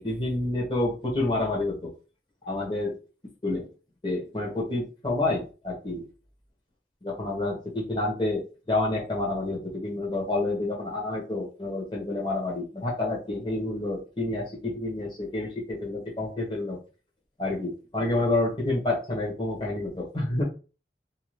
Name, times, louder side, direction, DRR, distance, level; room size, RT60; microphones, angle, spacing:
voice 1, 0.0-1.9 2.5-2.9 3.4-3.7 4.0-6.0 7.0-16.8 17.4-20.4, left 2 dB, 25° left, -3 dB, 1.0 m, -29 dB
2.7 x 2.3 x 3.1 m, 0.34 s
head